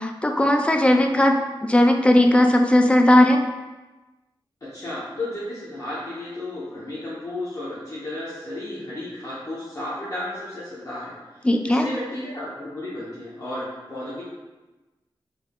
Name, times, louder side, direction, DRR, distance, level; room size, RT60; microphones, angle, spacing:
voice 1, 0.0-1.4 1.6-3.4 11.4-11.9, left 1 dB, 15° left, 4 dB, 0.3 m, -17 dB
voice 2, 4.7-11.1 11.4-14.2, left 1 dB, 40° left, -10 dB, 0.9 m, -33 dB
3.5 x 3.4 x 2.3 m, 1.2 s
wide cardioid pair, 85°, 9 cm